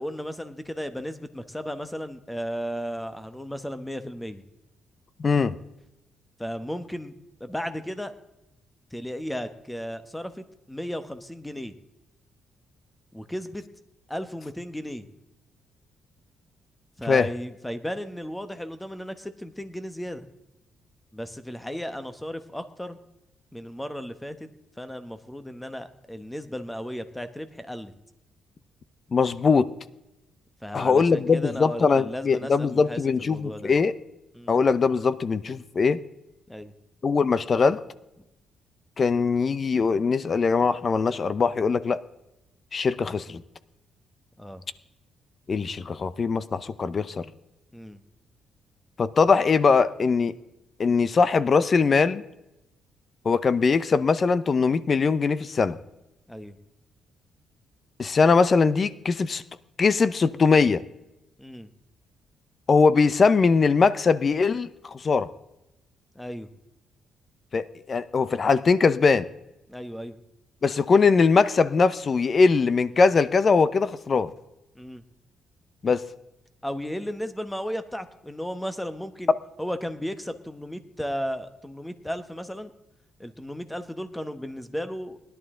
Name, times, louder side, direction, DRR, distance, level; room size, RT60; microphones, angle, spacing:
voice 1, 0.0-4.4 6.4-7.1 7.4-8.1 8.9-11.7 13.1-13.6 14.1-15.1 17.0-20.3 21.1-23.0 23.5-24.5 24.8-27.9 30.6-33.7 34.3-34.6 36.5-36.7 44.4-44.6 47.7-48.0 56.3-56.6 61.4-61.7 66.1-66.5 69.7-70.2 74.7-75.0 76.6-82.7 83.2-85.2, equal, 5° left, 10 dB, 1.2 m, -35 dB
voice 2, 5.2-5.6 17.1-17.3 29.1-29.7 30.7-34.0 34.5-36.0 37.0-37.8 39.0-42.0 42.7-43.4 45.5-47.3 49.0-50.4 50.8-52.2 53.2-55.8 58.0-59.4 59.8-60.8 62.7-65.3 67.5-69.3 70.6-74.3 75.8-76.0, left 5 dB, 40° left, 16 dB, 0.6 m, -21 dB
19.5 x 11.0 x 3.8 m, 0.92 s
cardioid pair, 90°, 0 cm